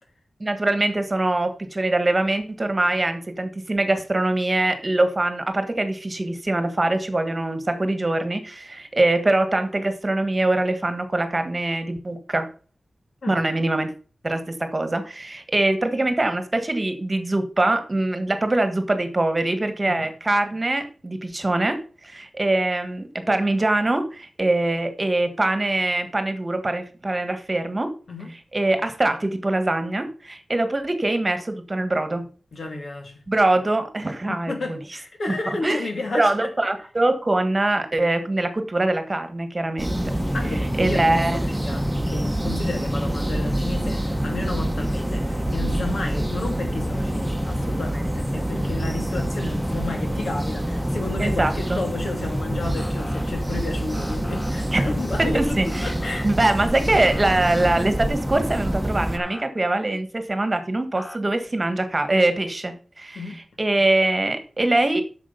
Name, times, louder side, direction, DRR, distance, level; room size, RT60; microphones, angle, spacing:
voice 1, 0.4-12.5 13.3-13.9 14.2-27.9 28.5-32.2 33.3-34.8 35.6-35.8 36.1-40.0 40.8-41.4 51.2-51.8 54.7-54.9 55.2-55.9 56.2-63.2 63.6-65.0, right 2 dB, 30° right, 1.5 m, -23 dB
voice 2, 32.5-33.2 34.3-36.3 40.3-56.3 63.1-63.4, left 2 dB, 70° left, 2.4 m, -32 dB
sound 1, 39.8-59.2, equal, 5° right, 1.2 m, -26 dB
Motor vehicle (road) / Siren, 52.8-53.3 53.9-54.5 55.7-56.3 56.9-57.8 59.2-59.4 61.0-61.2, left 1 dB, 30° left, 1.0 m, -39 dB
8.5 x 6.4 x 5.3 m
cardioid pair, 60°, 0 cm